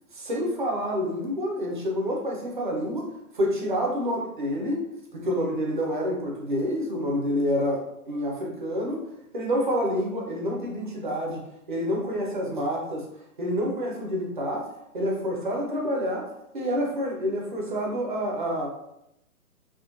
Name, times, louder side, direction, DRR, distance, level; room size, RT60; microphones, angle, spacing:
voice 1, 0.1-3.1 3.3-4.8 5.1-9.0 9.3-11.4 11.7-13.1 13.4-14.7 14.9-16.3 16.5-18.7, equal, 35° right, -1 dB, 0.5 m, -28 dB
3.5 x 2.1 x 2.5 m, 0.82 s
hypercardioid pair, 150°, 45 cm